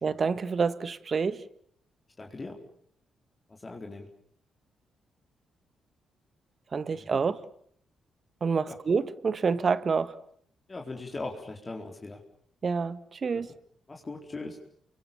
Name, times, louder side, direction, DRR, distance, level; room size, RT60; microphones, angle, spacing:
voice 1, 0.0-1.4 6.7-7.4 8.4-10.2 12.6-13.5, right 5 dB, 50° right, 1.6 m, -28 dB
voice 2, 2.2-2.6 3.5-4.1 6.9-7.1 8.7-8.8 10.7-12.2 13.9-14.6, left 3 dB, 30° left, 4.0 m, -39 dB
29.0 x 24.0 x 7.1 m
supercardioid pair, 60°, 0 cm